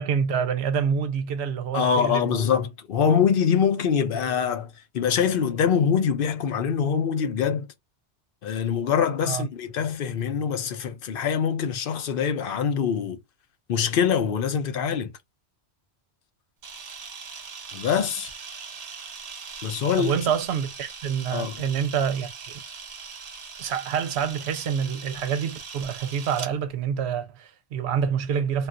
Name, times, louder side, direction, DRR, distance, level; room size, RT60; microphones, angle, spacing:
voice 1, 0.0-2.5 9.3-9.5 20.0-22.6 23.6-28.7, right 7 dB, 70° right, 0.8 m, -27 dB
voice 2, 1.7-7.7 8.4-13.2 13.7-15.1 17.7-18.3 19.6-20.1 21.3-21.6, left 7 dB, 60° left, 0.7 m, -24 dB
Camera, 16.6-26.5, right 5 dB, 40° right, 0.6 m, -40 dB
2.3 x 2.3 x 3.7 m
omnidirectional pair, 1.2 m